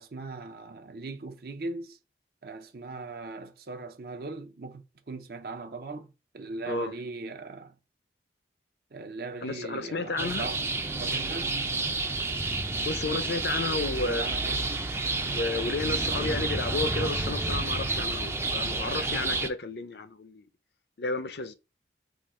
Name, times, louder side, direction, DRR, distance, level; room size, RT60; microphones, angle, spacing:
voice 1, 0.0-2.0 2.4-7.8 8.9-10.6 11.0-11.6 14.0-14.6, right 3 dB, 55° right, 0.6 m, -39 dB
voice 2, 9.4-10.5 12.8-14.6 15.3-20.4 21.0-21.5, left 3 dB, 65° left, 0.5 m, -32 dB
sound 1, 10.2-19.5, right 3 dB, 15° right, 0.4 m, -30 dB
3.7 x 2.8 x 4.3 m
head